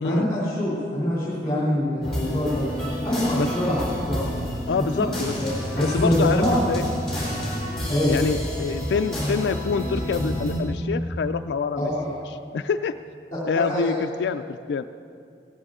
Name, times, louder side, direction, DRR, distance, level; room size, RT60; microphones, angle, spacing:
voice 1, 0.0-2.6 3.0-4.3 4.7-5.0 5.4-6.6 7.9-8.1 11.8-12.1 13.7-14.0, left 1 dB, 25° left, -8 dB, 2.9 m, -24 dB
sound 1, 2.0-10.6, equal, 5° left, 3.6 m, -29 dB
voice 2, 4.7-5.3 5.8-6.8 8.1-11.9 12.3-12.9 13.5-14.8, left 5 dB, 80° left, 9 dB, 0.3 m, -26 dB
17.0 x 13.5 x 3.7 m, 2.4 s
head